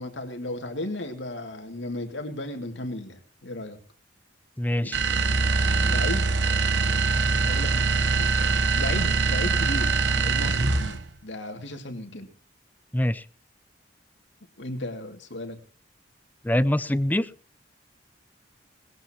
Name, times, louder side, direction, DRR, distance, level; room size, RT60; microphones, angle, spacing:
voice 1, 0.0-3.8 4.8-4.9 5.8-6.4 7.4-8.3 8.7-12.3 14.6-15.6, left 1 dB, 80° left, 6 dB, 2.5 m, -35 dB
voice 2, 4.6-5.0 12.9-13.2 16.4-17.3, left 1 dB, 10° left, 16 dB, 0.6 m, -24 dB
sound 1, 4.9-11.1, right 4 dB, 70° right, 1.1 m, -23 dB
20.0 x 15.5 x 3.0 m, 0.38 s
head